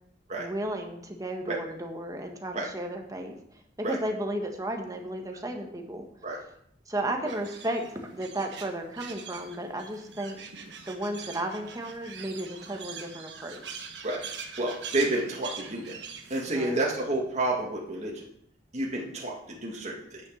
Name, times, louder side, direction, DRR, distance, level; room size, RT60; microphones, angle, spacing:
voice 1, 0.4-3.3 3.8-6.1 6.9-10.4 10.9-13.8 16.4-16.8, right 1 dB, 20° right, 3 dB, 1.5 m, -34 dB
sound 1, 7.3-16.4, right 6 dB, 70° right, 1.3 m, -43 dB
voice 2, 14.6-16.0 16.3-18.2 18.7-20.2, right 2 dB, 40° right, -2 dB, 2.0 m, -30 dB
9.7 x 6.2 x 6.4 m, 0.70 s
head